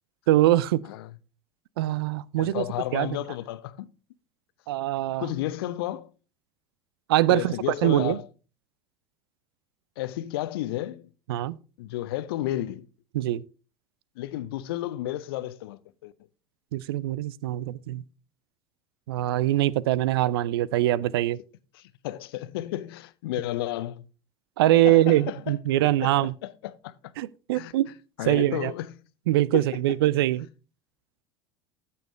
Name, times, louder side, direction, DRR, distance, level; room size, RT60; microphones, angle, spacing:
voice 1, 0.3-0.8 1.8-2.6 2.9-3.1 4.7-5.3 7.1-7.5 7.8-8.2 11.3-11.6 13.1-13.4 16.7-18.0 19.1-21.4 24.6-26.3 27.2-27.9 28.3-28.7 29.3-30.5, right 14 dB, 65° right, 0.5 m, -23 dB
voice 2, 0.8-1.2 2.4-3.9 5.2-6.1 7.3-8.3 10.0-11.1 11.8-12.9 14.2-16.1 21.7-24.1 24.8-25.6 25.8-27.1 27.5-27.7 28.2-28.9 29.5-29.6, left 14 dB, 60° left, 0.8 m, -32 dB
14.0 x 7.1 x 3.2 m
figure-of-eight pair, 75°, 14 cm